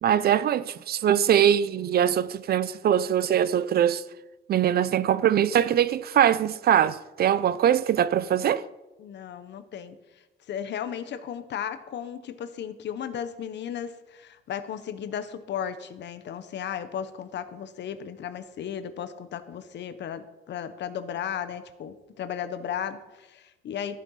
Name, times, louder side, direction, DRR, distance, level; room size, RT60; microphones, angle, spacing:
voice 1, 0.0-4.0 4.5-8.6, right 10 dB, 55° right, 0.5 m, -22 dB
voice 2, 9.0-10.0 10.5-24.0, left 8 dB, 70° left, 1.0 m, -35 dB
13.5 x 8.6 x 5.6 m
cardioid pair, 150°, 19 cm